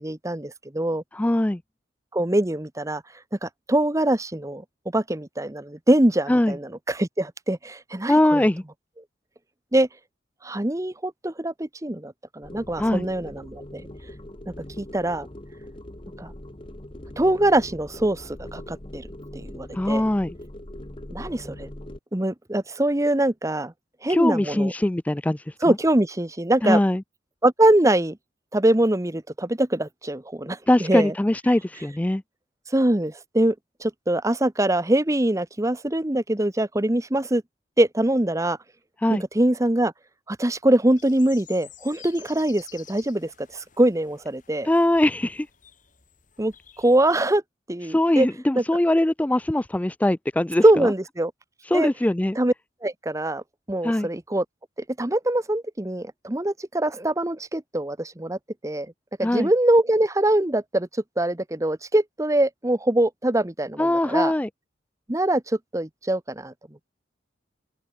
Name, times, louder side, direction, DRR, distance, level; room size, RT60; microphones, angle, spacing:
voice 1, 0.0-1.0 2.1-3.0 3.4-4.6 4.9-8.4 9.7-9.9 10.4-13.8 14.8-15.3 16.2-16.3 17.2-19.1 19.3-20.0 21.1-21.7 22.1-23.7 24.0-24.7 25.6-26.8 27.4-28.2 28.5-31.1 32.7-33.5 33.8-37.4 37.8-38.6 39.3-39.9 40.3-44.7 46.4-47.4 47.7-48.3 48.5-48.6 50.6-51.3 51.7-51.9 52.4-52.5 52.8-53.4 53.7-54.4 55.0-58.4 58.6-58.9 59.2-60.9 61.2-64.3 65.1-66.5, right 1 dB, 15° right, 1.0 m, -23 dB
voice 2, 1.1-1.6 6.3-6.5 8.1-8.6 12.8-13.0 19.7-20.4 24.1-25.8 26.6-27.0 30.7-32.2 39.0-39.2 44.6-45.5 47.8-50.9 51.6-52.4 53.8-54.1 59.2-59.5 63.8-64.5, left 1 dB, 10° left, 0.3 m, -22 dB
sound 1, 12.4-22.0, left 1 dB, 25° left, 1.5 m, -41 dB
sound 2, 41.0-47.2, left 10 dB, 45° left, 3.8 m, -50 dB
open air
head